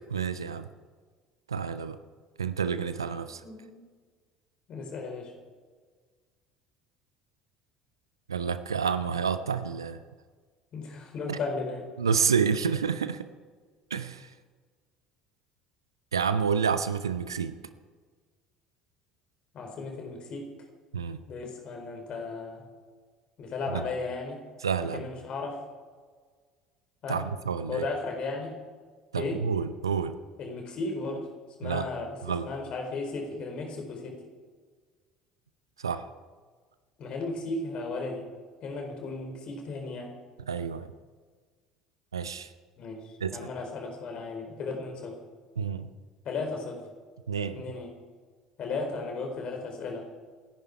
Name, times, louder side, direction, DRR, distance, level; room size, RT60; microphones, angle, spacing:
voice 1, 0.1-0.7 1.5-2.0 2.4-3.4 8.3-10.0 11.3-11.4 12.0-13.3 13.9-14.3 16.1-17.5 20.9-21.2 23.7-23.8 24.6-25.0 27.1-27.8 29.1-30.2 31.6-31.9 32.2-32.5 35.8-36.0 40.5-40.9 42.1-42.5 43.2-43.4 45.6-45.9 47.3-47.6, right 6 dB, 80° right, 13 dB, 0.7 m, -29 dB
voice 2, 3.3-3.9 4.7-5.3 10.7-11.9 19.5-20.5 21.3-22.6 23.4-24.4 24.8-25.6 27.0-27.3 27.7-28.6 29.2-29.5 30.4-31.3 31.6-34.2 37.0-38.3 38.6-40.2 42.8-45.2 46.2-46.9 47.5-48.0 48.6-50.1, left 3 dB, 45° left, 2 dB, 4.3 m, -35 dB
27.5 x 10.5 x 4.9 m, 1.5 s
figure-of-eight pair, 60°, 2 cm